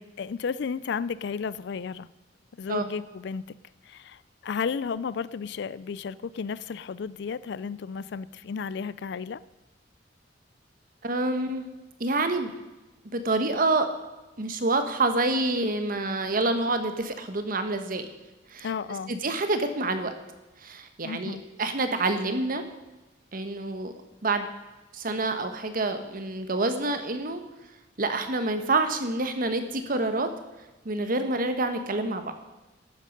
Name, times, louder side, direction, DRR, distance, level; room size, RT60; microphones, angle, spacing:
voice 1, 0.0-2.1 2.6-3.4 3.8-9.4 18.6-19.1 21.0-21.4, left 6 dB, 65° left, 18 dB, 0.4 m, -33 dB
voice 2, 11.0-11.7 12.0-12.5 13.1-13.9 14.4-18.1 18.5-18.7 19.1-20.1 20.6-22.6 23.3-23.9 24.2-24.5 24.9-27.4 28.0-30.3 30.8-32.3, right 2 dB, 50° right, 8 dB, 1.2 m, -27 dB
12.0 x 9.5 x 5.2 m, 1.1 s
head